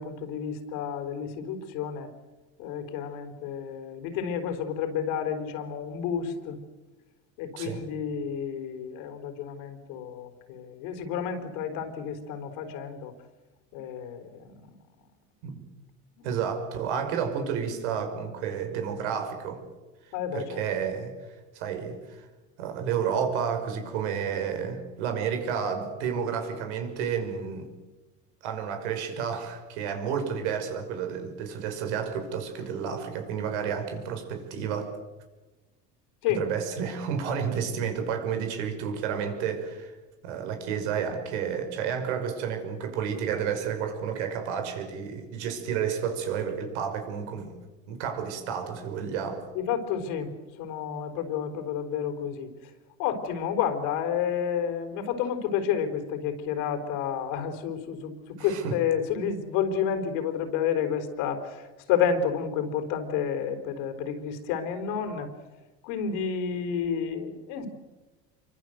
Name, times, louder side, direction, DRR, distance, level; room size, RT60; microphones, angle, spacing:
voice 1, 0.0-2.1 2.6-6.6 7.4-13.1 13.7-14.7 16.2-16.3 20.1-20.6 36.2-36.5 49.5-50.3 50.6-52.5 53.0-65.3 65.8-67.7, left 8 dB, 75° left, 7 dB, 4.2 m, -30 dB
voice 2, 16.2-19.6 20.3-21.1 21.5-22.3 22.6-27.7 28.4-35.0 36.4-40.0 40.2-47.6 47.9-49.4 58.4-58.8, right 7 dB, 85° right, 6 dB, 5.7 m, -31 dB
27.0 x 24.5 x 8.0 m, 1.2 s
supercardioid pair, 125°, 33 cm